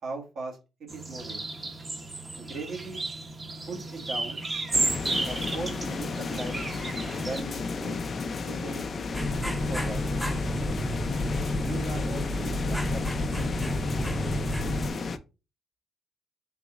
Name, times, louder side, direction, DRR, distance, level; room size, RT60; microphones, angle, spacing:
voice 1, 0.0-1.5 2.4-3.0 3.7-4.5 5.2-6.6 7.1-8.0 8.5-8.9 9.4-10.0 11.5-13.0, right 3 dB, 65° right, 0 dB, 1.7 m, -38 dB
sound 1, 0.9-7.4, right 2 dB, 30° right, 0.9 m, -33 dB
sound 2, 4.7-15.2, left 4 dB, 45° left, 0.4 m, -33 dB
sound 3, 9.1-14.9, left 1 dB, ahead, 0.6 m, -30 dB
4.0 x 3.9 x 2.5 m, 0.29 s
cardioid pair, 90°, 0 cm